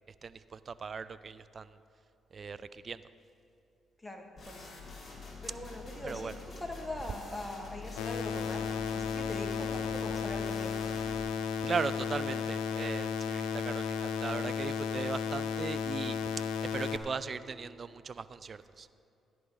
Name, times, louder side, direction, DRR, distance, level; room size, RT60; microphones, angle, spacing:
voice 1, 0.2-1.8 2.3-3.0 6.0-6.3 11.6-16.2 16.7-18.9, right 5 dB, 45° right, 15 dB, 0.4 m, -38 dB
voice 2, 4.0-4.7 5.4-8.6 8.9-10.7, left 1 dB, 10° left, 2 dB, 1.7 m, -42 dB
sound 1, 4.4-11.2, left 3 dB, 35° left, 2.9 m, -46 dB
sound 2, 8.0-17.0, left 7 dB, 90° left, 0.6 m, -34 dB
14.5 x 10.5 x 4.0 m, 2.6 s
cardioid pair, 70°, 0 cm